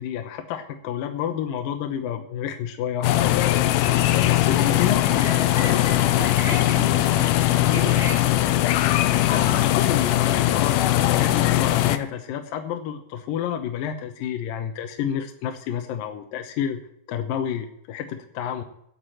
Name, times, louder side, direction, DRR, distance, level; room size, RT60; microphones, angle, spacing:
voice 1, 0.0-3.7 4.1-5.3 5.6-5.9 9.3-16.8 17.1-18.6, left 9 dB, 70° left, 6 dB, 2.4 m, -29 dB
sound 1, 3.0-12.0, left 14 dB, 85° left, 1.8 m, -20 dB
voice 2, 4.6-8.2, left 1 dB, ahead, -3 dB, 4.6 m, -33 dB
9.4 x 8.2 x 8.9 m, 0.72 s
omnidirectional pair, 4.6 m